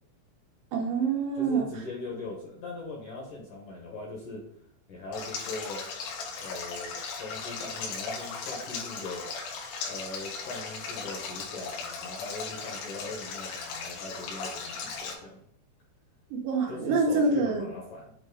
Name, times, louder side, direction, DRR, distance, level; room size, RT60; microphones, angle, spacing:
voice 1, 0.7-1.7 16.3-17.7, right 4 dB, 75° right, 0 dB, 3.0 m, -26 dB
voice 2, 1.3-4.4 4.9-5.8 6.4-9.3 9.8-15.4 16.7-18.1, left 2 dB, 65° left, -3 dB, 2.3 m, -40 dB
Stream, 5.1-15.1, left 5 dB, 85° left, 3.6 m, -37 dB
8.2 x 2.9 x 4.9 m, 0.68 s
omnidirectional pair, 5.2 m